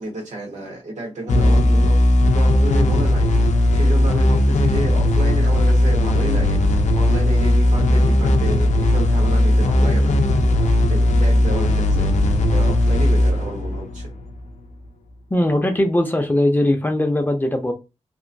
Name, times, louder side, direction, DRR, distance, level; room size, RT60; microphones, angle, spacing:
voice 1, 0.0-2.0 2.3-3.3 3.7-6.6 6.9-10.1 10.5-12.1 12.5-14.1, right 1 dB, 90° right, 1.2 m, -30 dB
sound 1, 1.3-14.6, left 1 dB, 80° left, 0.4 m, -17 dB
sound 2, 10.1-11.3, right 2 dB, 50° right, 0.7 m, -41 dB
voice 2, 15.3-17.7, left 1 dB, 15° left, 0.5 m, -19 dB
2.9 x 2.6 x 2.6 m
wide cardioid pair, 135°, 12 cm